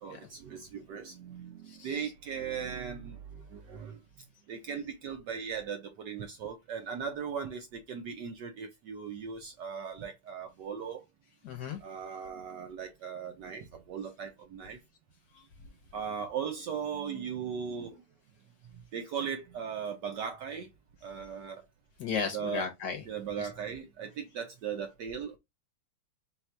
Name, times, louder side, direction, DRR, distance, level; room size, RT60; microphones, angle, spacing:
voice 1, 0.0-4.0 4.5-11.0 11.8-14.8 15.9-18.0 18.9-20.7 21.0-21.7 22.3-22.6 23.1-25.4, right 7 dB, 70° right, 1.1 m, -38 dB
voice 2, 1.7-2.0 11.4-11.8 22.0-23.0 23.4-23.5, left 6 dB, 60° left, 1.2 m, -35 dB
4.1 x 2.4 x 4.4 m
omnidirectional pair, 2.4 m